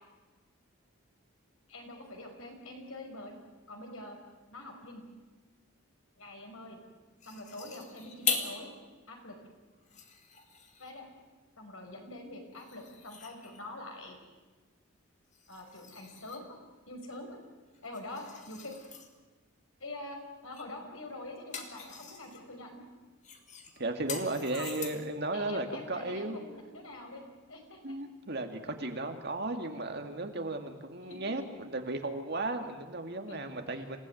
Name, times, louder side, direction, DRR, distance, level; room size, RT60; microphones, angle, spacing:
voice 1, 1.7-3.3 3.7-4.2 4.5-5.0 6.2-6.8 7.3-8.7 9.1-9.4 10.8-11.0 11.6-14.2 15.5-16.6 16.9-17.4 17.8-18.7 19.8-22.8 24.4-24.7 25.3-27.2 27.5-27.8 29.7-29.9 31.1-31.2 33.3-33.4 33.7-33.8, left 2 dB, 80° left, 3 dB, 5.5 m, -45 dB
sound 1, 7.2-8.6 9.1-9.2 9.7-11.1 12.5-13.8 15.3-16.5 17.7-19.1 20.5-20.8 21.1-22.4 23.2-25.2, left 6 dB, 35° left, 2.3 m, -40 dB
voice 2, 23.8-26.4 27.8-34.0, right 2 dB, 50° right, 5 dB, 2.2 m, -35 dB
27.5 x 16.5 x 9.3 m, 1.3 s
head